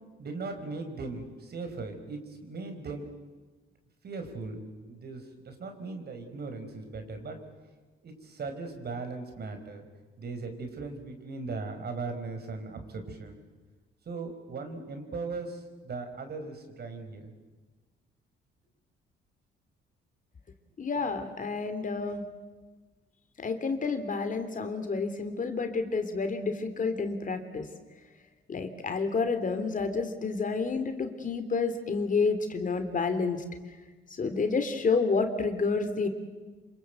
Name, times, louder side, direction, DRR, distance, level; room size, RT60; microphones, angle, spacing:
voice 1, 0.2-3.1 4.0-7.4 8.0-9.9 10.2-13.5 14.1-17.3, right 3 dB, 55° right, 6 dB, 5.2 m, -38 dB
voice 2, 20.8-22.2 23.4-27.7 28.5-33.4 34.2-36.1, left 4 dB, 40° left, 8 dB, 3.2 m, -29 dB
27.5 x 25.5 x 8.0 m, 1.3 s
cardioid pair, 90°, 20 cm